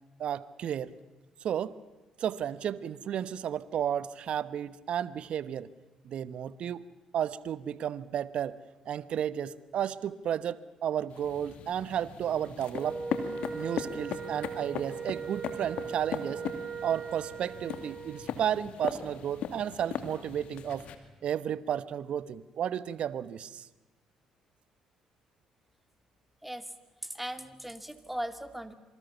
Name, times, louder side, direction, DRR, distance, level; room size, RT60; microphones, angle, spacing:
voice 1, 0.2-0.9 1.4-1.7 2.2-5.7 6.0-6.8 7.1-8.6 8.9-13.0 13.5-16.4 16.8-20.8 21.2-23.7, right 9 dB, 60° right, 17 dB, 1.1 m, -33 dB
sound 1, 11.1-20.9, left 8 dB, 65° left, 2.5 m, -39 dB
Wind instrument woodwind instrument, 12.7-18.4, right 5 dB, 35° right, 1.3 m, -39 dB
voice 2, 26.4-26.7 27.0-28.7, right 1 dB, 5° right, 10 dB, 2.5 m, -38 dB
26.5 x 24.5 x 7.1 m, 1.2 s
hypercardioid pair, 50°, 2 cm